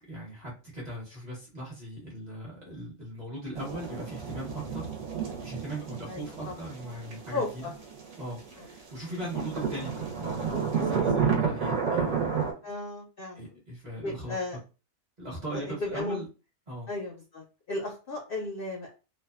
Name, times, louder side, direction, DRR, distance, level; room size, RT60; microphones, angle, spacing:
voice 1, 0.1-4.9 5.2-7.6 8.2-12.3 13.4-14.6 15.2-16.3 16.7-16.9, right 1 dB, 35° right, -4 dB, 0.9 m, -39 dB
sound 1, 3.6-8.8 9.1-12.5, right 6 dB, 65° right, 1.0 m, -31 dB
voice 2, 6.1-6.6 7.3-7.7 8.6-8.7 12.6-13.6 14.0-14.6 15.5-16.2 16.9-18.9, left 2 dB, 60° left, 0 dB, 0.6 m, -35 dB
2.6 x 2.2 x 2.3 m, 0.33 s
omnidirectional pair, 1.4 m